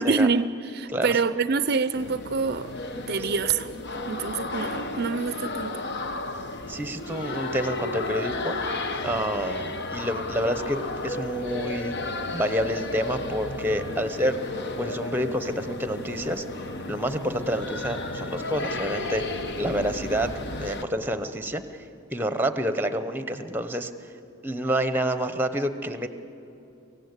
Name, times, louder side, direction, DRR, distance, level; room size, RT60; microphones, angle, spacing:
voice 1, 0.0-2.7 3.1-3.7 4.0-5.8, right 4 dB, 50° right, 13 dB, 0.5 m, -26 dB
sound 1, 1.9-20.8, left 2 dB, 55° left, 1.1 m, -33 dB
voice 2, 6.7-8.8 9.0-11.9 12.3-14.4 14.8-16.4 16.9-20.3 20.6-21.6 22.1-23.9 24.4-26.1, equal, 10° right, 10 dB, 0.9 m, -28 dB
24.5 x 16.0 x 8.2 m, 2.9 s
head